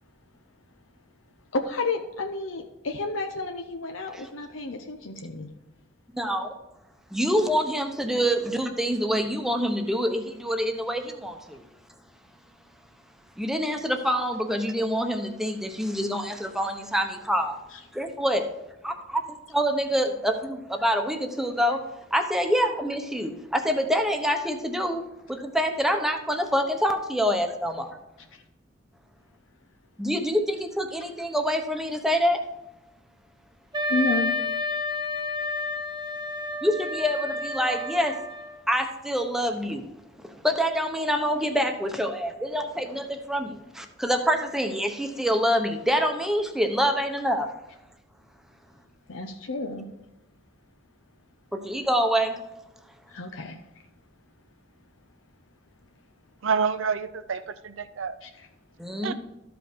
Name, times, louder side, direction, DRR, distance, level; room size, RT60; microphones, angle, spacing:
voice 1, 1.5-5.5 17.7-17.8 28.3-28.4 33.9-34.4 49.1-49.9 53.1-53.6 58.2-58.5, left 3 dB, 85° left, 4 dB, 0.8 m, -31 dB
voice 2, 6.1-6.5 7.1-11.6 13.4-17.6 17.9-18.5 18.8-21.8 22.1-25.0 25.3-28.0 30.0-32.4 36.6-38.2 38.7-39.8 40.3-47.5 51.5-52.4 58.8-59.1, equal, ahead, 5 dB, 0.9 m, -26 dB
Wind instrument woodwind instrument, 33.7-38.6, left 2 dB, 20° right, 1.1 m, -30 dB
voice 3, 56.4-58.2 59.0-59.1, right 6 dB, 75° right, 13 dB, 0.6 m, -28 dB
13.0 x 5.2 x 4.5 m, 0.96 s
head